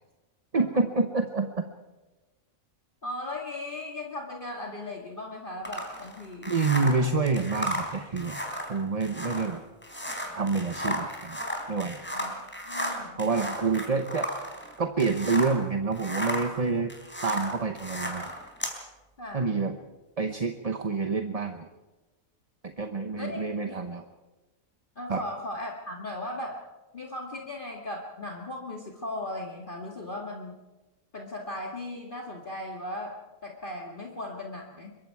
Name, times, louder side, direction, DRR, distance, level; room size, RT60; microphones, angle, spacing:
voice 1, 0.5-1.6 6.5-9.6 10.3-11.4 11.7-12.0 13.2-14.3 14.8-16.9 17.2-18.3 19.3-19.7 20.2-21.6 22.6-24.0 25.1-25.2, right 4 dB, 30° right, 6 dB, 1.0 m, -27 dB
voice 2, 3.0-6.6 12.1-12.3 12.6-13.2 19.2-19.6 23.2-23.4 23.7-24.0 25.0-26.6 26.9-30.6 31.1-34.9, left 1 dB, 40° left, 0 dB, 2.1 m, -37 dB
sound 1, 5.6-15.6 15.9-18.8, equal, 10° left, 3.5 m, -34 dB
25.5 x 22.5 x 4.8 m, 1.1 s
omnidirectional pair, 1.4 m